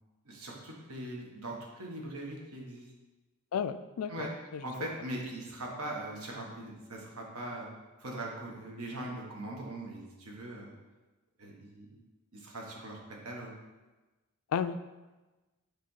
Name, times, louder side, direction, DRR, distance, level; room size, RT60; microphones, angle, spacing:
voice 1, 0.2-2.9 4.1-4.3 4.6-7.7 8.0-10.7 11.4-12.0 12.3-13.5, right 1 dB, 85° right, -1 dB, 1.5 m, -41 dB
voice 2, 3.5-4.3 14.5-14.8, left 7 dB, 80° left, 13 dB, 0.4 m, -32 dB
7.5 x 3.5 x 5.6 m, 1.2 s
head